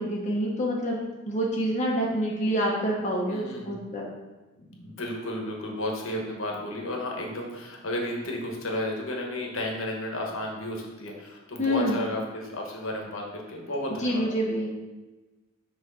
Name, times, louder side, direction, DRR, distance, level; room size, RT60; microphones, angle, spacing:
voice 1, 0.0-4.1 11.6-12.0 14.0-14.7, equal, 35° left, -4 dB, 0.9 m, -27 dB
voice 2, 3.3-3.8 4.6-14.3, left 1 dB, 65° left, 0 dB, 1.2 m, -33 dB
6.2 x 3.2 x 5.5 m, 1.2 s
head